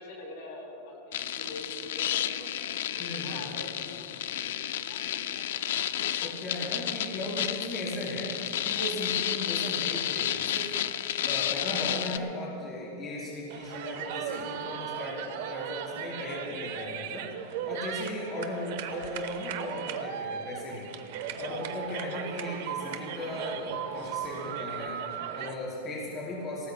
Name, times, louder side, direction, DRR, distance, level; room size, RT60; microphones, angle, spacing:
voice 1, 0.0-6.1, left 2 dB, 55° left, -1 dB, 4.1 m, -45 dB
sound 1, 1.1-12.2, left 11 dB, 75° left, 0.5 m, -31 dB
voice 2, 3.0-3.6 6.2-17.3 17.6-20.9 21.4-26.7, left 1 dB, 20° left, -6 dB, 3.8 m, -37 dB
sound 2, 13.5-25.5, right 9 dB, 55° right, 0.9 m, -37 dB
28.0 x 18.0 x 2.2 m, 2.7 s
supercardioid pair, 170°, 0 cm